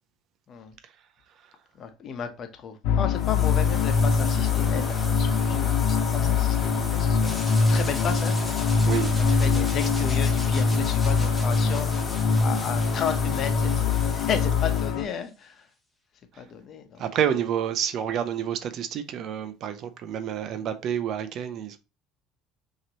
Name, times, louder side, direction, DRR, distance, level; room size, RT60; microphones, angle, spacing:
voice 1, 1.7-8.4 9.2-15.7 16.4-17.0, left 7 dB, 45° left, 1.0 m, -34 dB
sound 1, 2.8-15.0, left 5 dB, 70° left, 0.8 m, -23 dB
sound 2, 3.2-14.9, left 2 dB, 25° left, 1.8 m, -37 dB
sound 3, 7.2-15.2, left 1 dB, 5° left, 1.2 m, -42 dB
voice 2, 8.8-9.4 16.3-16.4 17.0-21.8, right 9 dB, 55° right, 0.6 m, -29 dB
5.8 x 2.9 x 2.9 m
supercardioid pair, 90°, 0 cm